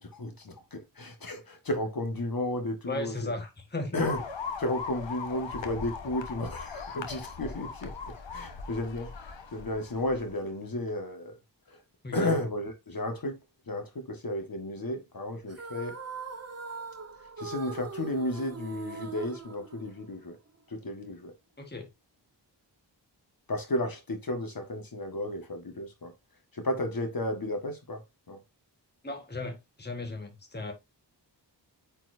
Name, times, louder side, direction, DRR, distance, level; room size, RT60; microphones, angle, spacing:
voice 1, 0.0-3.3 3.9-4.2 4.6-7.9 8.3-11.4 11.7-11.8 12.1-13.4 13.7-16.0 17.4-20.4 20.7-21.3 23.5-26.1 26.5-28.4, left 1 dB, 50° left, 1.7 m, -33 dB
voice 2, 2.8-4.1 12.0-12.4 21.6-21.9 29.0-30.7, left 2 dB, 25° left, 1.5 m, -36 dB
sound 1, 4.0-10.4, left 5 dB, 85° left, 1.3 m, -39 dB
sound 2, 15.5-20.3, right 4 dB, 35° right, 1.2 m, -41 dB
9.2 x 4.5 x 2.7 m
wide cardioid pair, 105°, 44 cm